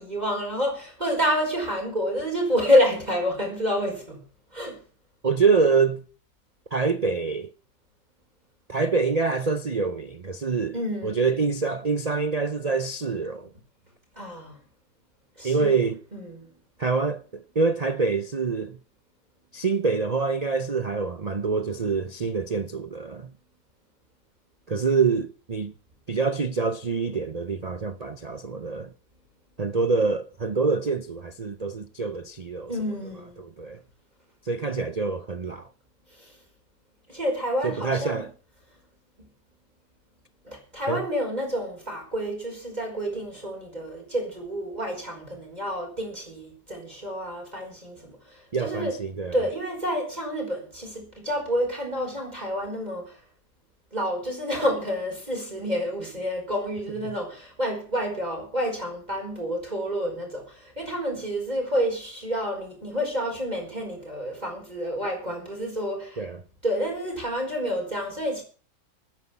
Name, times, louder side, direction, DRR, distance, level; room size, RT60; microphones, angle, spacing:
voice 1, 0.0-4.2 4.5-4.8 10.7-11.2 14.2-14.6 15.4-15.7 16.1-16.5 32.7-33.4 36.2-36.3 37.1-38.2 40.4-48.9 49.3-53.1 53.9-66.2 66.6-68.4, equal, 20° right, 5.1 m, -28 dB
voice 2, 5.2-6.0 6.7-7.5 8.7-10.8 11.0-13.5 15.4-16.0 16.8-18.8 19.5-23.3 24.7-25.7 26.1-28.9 29.6-32.8 33.4-33.8 34.4-35.7 37.6-38.3 40.9-41.0 48.5-49.4 66.2-66.4, right 4 dB, 70° right, 0.3 m, -26 dB
11.5 x 9.7 x 8.3 m
omnidirectional pair, 1.9 m